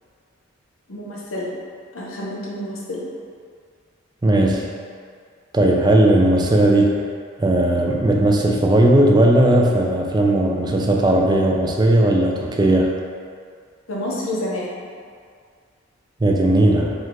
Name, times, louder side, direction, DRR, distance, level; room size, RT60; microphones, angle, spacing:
voice 1, 0.9-1.5 1.9-3.1 13.9-14.9, left 1 dB, 80° left, -4 dB, 0.9 m, -29 dB
voice 2, 4.2-4.7 5.5-7.0 7.4-12.9 16.2-16.9, right 1 dB, 20° right, 0 dB, 0.4 m, -17 dB
5.2 x 2.4 x 3.7 m, 2.1 s
head